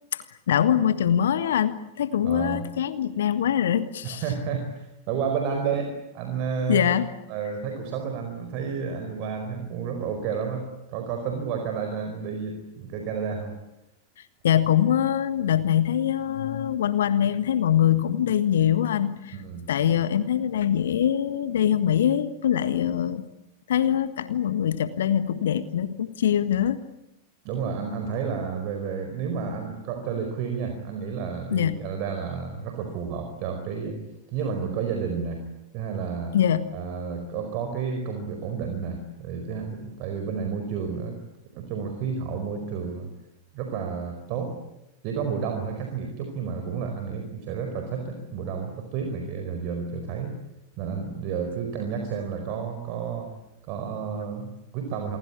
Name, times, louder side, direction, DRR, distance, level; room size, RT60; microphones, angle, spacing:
voice 1, 0.1-4.2 6.7-7.1 14.4-19.4 19.7-23.2 23.7-26.8 31.5-31.8 36.3-36.7, left 10 dB, 60° left, 12 dB, 1.5 m, -23 dB
voice 2, 2.2-2.6 4.0-6.9 7.3-13.5 19.3-19.7 27.4-34.0 34.3-35.4 35.7-36.4 36.7-41.2 41.5-43.1 43.5-44.6 45.0-50.3 50.8-53.3 53.7-55.2, right 6 dB, 45° right, 5 dB, 4.7 m, -31 dB
28.0 x 23.5 x 8.6 m, 0.91 s
figure-of-eight pair, 90°, 0 cm